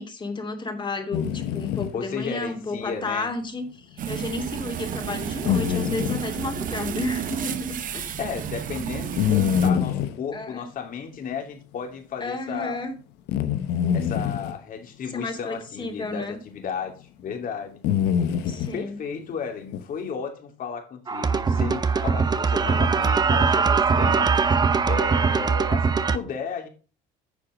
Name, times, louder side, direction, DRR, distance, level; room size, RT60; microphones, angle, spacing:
voice 1, 0.0-8.1 10.3-10.7 12.2-12.9 15.1-16.4 18.4-19.0, left 2 dB, 30° left, 2.6 m, -32 dB
sound 1, 1.1-1.9 5.4-6.2 9.2-10.2 13.3-14.5 16.5-16.6 17.8-18.8 19.7-19.8, left 9 dB, 85° left, 1.0 m, -24 dB
voice 2, 1.9-3.3 8.2-12.8 13.9-17.8 18.7-26.7, left 6 dB, 55° left, 2.8 m, -34 dB
sound 2, 4.0-9.7, right 8 dB, 55° right, 1.1 m, -31 dB
sound 3, 21.1-26.2, right 5 dB, 25° right, 0.8 m, -21 dB
9.9 x 6.9 x 5.1 m
cardioid pair, 110°, 17 cm